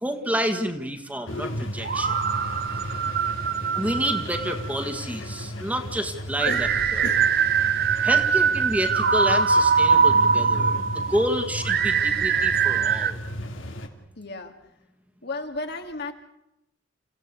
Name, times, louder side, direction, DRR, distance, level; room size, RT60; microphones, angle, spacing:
voice 1, 0.0-2.2 3.7-6.5 6.9-7.1 8.0-13.2, equal, 10° right, 6 dB, 2.0 m, -29 dB
sound 1, 1.3-13.9, equal, 85° left, 3.0 m, -35 dB
sound 2, 1.8-5.0 6.4-13.1, right 6 dB, 55° right, 1.2 m, -22 dB
voice 2, 14.2-14.5 15.2-16.1, left 3 dB, 60° left, 5 dB, 2.5 m, -33 dB
28.5 x 16.5 x 6.9 m, 0.86 s
head